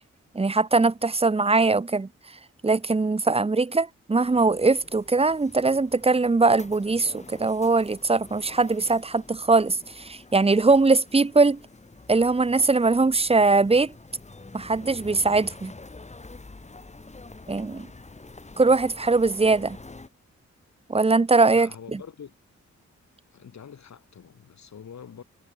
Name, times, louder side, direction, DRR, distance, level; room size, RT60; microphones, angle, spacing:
voice 1, 0.3-2.1 2.6-11.6 12.1-13.9 14.5-15.7 17.5-17.9 18.6-19.8 20.9-21.7, right 3 dB, 20° right, 1.1 m, -21 dB
sound 1, 4.2-20.1, left 3 dB, 25° left, 5.8 m, -47 dB
voice 2, 21.5-22.3 23.3-25.2, left 7 dB, 65° left, 6.6 m, -45 dB
wide cardioid pair, 135°, 30 cm